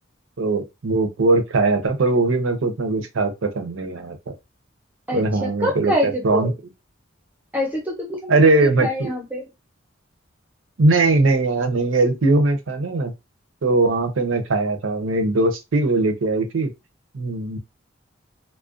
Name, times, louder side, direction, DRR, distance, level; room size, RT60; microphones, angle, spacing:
voice 1, 0.4-4.2 5.1-6.5 8.3-9.1 10.8-13.1 13.6-16.7 17.1-17.6, right 2 dB, 80° right, 0.6 m, -20 dB
voice 2, 5.1-6.5 7.5-9.5, left 1 dB, 10° right, 0.6 m, -26 dB
2.4 x 2.1 x 2.4 m
head